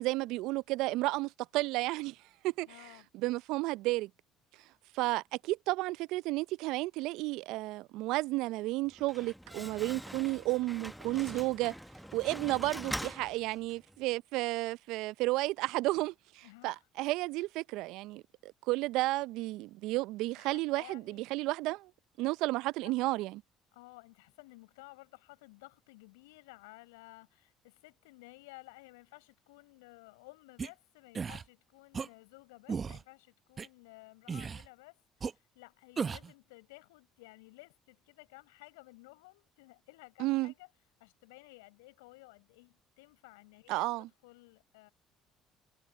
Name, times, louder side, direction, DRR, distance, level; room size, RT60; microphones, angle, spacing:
voice 1, 0.0-2.2 2.4-2.7 3.1-4.1 4.9-11.7 12.1-21.9 22.2-23.4 40.2-40.5 43.7-44.1, right 20 dB, 70° right, 0.5 m, -32 dB
voice 2, 2.6-3.1 12.2-12.6 16.4-16.9 20.3-21.3 22.2-22.3 22.8-23.3 23.7-40.7 41.0-44.9, left 24 dB, 80° left, 5.4 m, -55 dB
Slam, 8.9-14.0, equal, ahead, 1.3 m, -43 dB
sound 1, 30.6-30.7 31.2-31.4 31.9-32.1 32.7-33.0 33.6-33.7 34.3-34.7 35.2-35.3 36.0-36.3, right 5 dB, 40° right, 1.0 m, -35 dB
hypercardioid pair, 55°, 0 cm